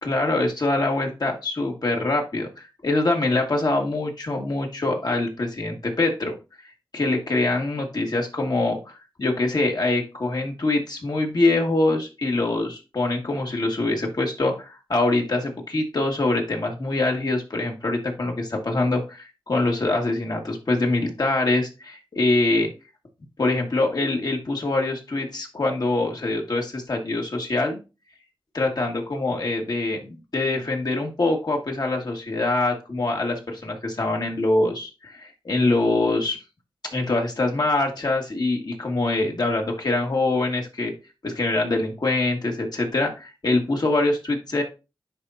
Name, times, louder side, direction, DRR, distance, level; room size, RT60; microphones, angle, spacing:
voice 1, 0.0-6.3 6.9-22.7 23.4-27.8 28.5-36.4 36.9-40.9 41.2-44.6, left 2 dB, 50° left, 1 dB, 2.0 m, -24 dB
10.0 x 3.7 x 2.8 m, 0.29 s
cardioid pair, 60°, 9 cm